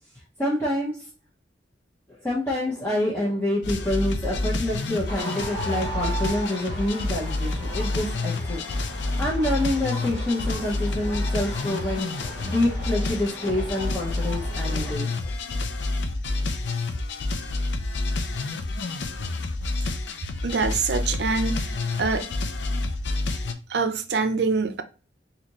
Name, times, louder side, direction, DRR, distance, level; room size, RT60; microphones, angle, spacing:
voice 1, 0.4-1.1 2.1-8.6 9.2-15.3 15.8-15.9 16.4-16.5, left 1 dB, 15° left, 0.9 m, -27 dB
sound 1, 3.6-23.5, left 2 dB, 85° left, 0.5 m, -29 dB
sound 2, 5.1-14.9, right 1 dB, 65° left, 1.6 m, -38 dB
voice 2, 20.4-21.7 22.0-22.3 23.7-24.8, right 4 dB, 70° right, 0.5 m, -25 dB
4.1 x 2.7 x 3.0 m
head